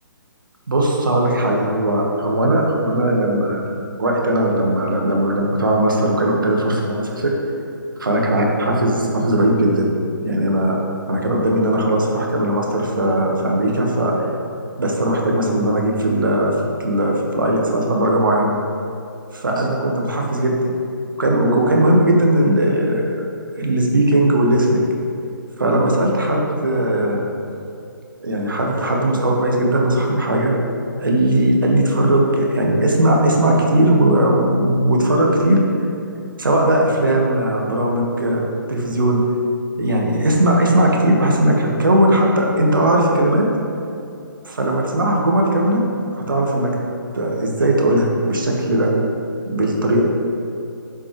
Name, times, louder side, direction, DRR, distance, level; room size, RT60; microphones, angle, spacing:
voice 1, 0.7-3.6 4.0-7.3 8.0-9.9 10.2-10.8 11.1-14.3 14.8-16.5 16.8-18.5 19.4-20.6 21.2-23.2 23.6-24.8 25.6-27.3 28.2-30.5 31.0-35.6 36.4-38.4 38.7-39.2 39.8-43.5 44.5-45.8 46.1-46.7 47.1-48.9 49.5-50.0, right 1 dB, 70° right, -1 dB, 1.8 m, -18 dB
11.5 x 7.7 x 3.4 m, 2.6 s
figure-of-eight pair, 135°, 11 cm